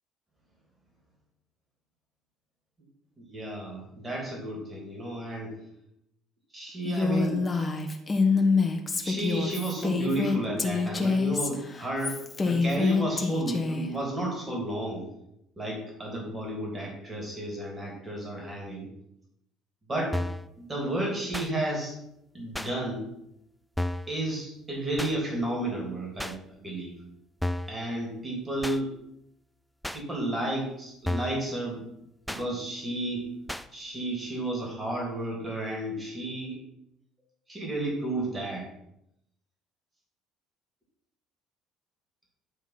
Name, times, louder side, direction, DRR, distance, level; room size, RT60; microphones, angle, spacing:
voice 1, 3.2-5.5 6.5-7.4 9.0-15.0 15.6-18.9 19.9-20.2 20.6-22.0 22.3-23.0 24.1-26.9 27.7-28.9 29.9-31.8 32.3-33.3 33.7-36.6 37.5-38.6, right 1 dB, 25° right, -1 dB, 2.9 m, -32 dB
Female speech woman speaking, 6.8-13.9, left 4 dB, 25° left, 1.1 m, -26 dB
sound 1, 20.1-20.5 21.3-21.5 22.5-22.7 23.8-24.1 25.0-25.1 26.2-26.4 27.4-27.8 28.6-28.8 29.8-30.0 31.0-31.4 32.3-32.4 33.5-33.7, left 1 dB, ahead, 0.4 m, -32 dB
9.7 x 3.5 x 5.7 m, 0.79 s
hypercardioid pair, 55°, 0 cm